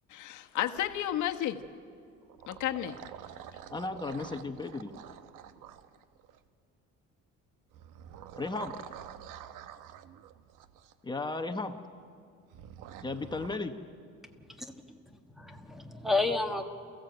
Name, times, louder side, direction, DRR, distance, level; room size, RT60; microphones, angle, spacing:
voice 1, 0.1-1.6 2.5-3.0, left 12 dB, 70° left, 6 dB, 1.2 m, -32 dB
sound 1, 0.7-1.7 2.2-6.5 7.7-10.9 12.5-13.6, right 10 dB, 80° right, 1.0 m, -48 dB
voice 2, 3.7-4.9 8.4-8.7 11.0-11.7 13.0-13.7, left 3 dB, 15° left, 7 dB, 1.0 m, -35 dB
voice 3, 15.3-16.6, left 3 dB, ahead, 5 dB, 1.4 m, -30 dB
28.5 x 15.5 x 7.9 m, 2.4 s
cardioid pair, 145°, 31 cm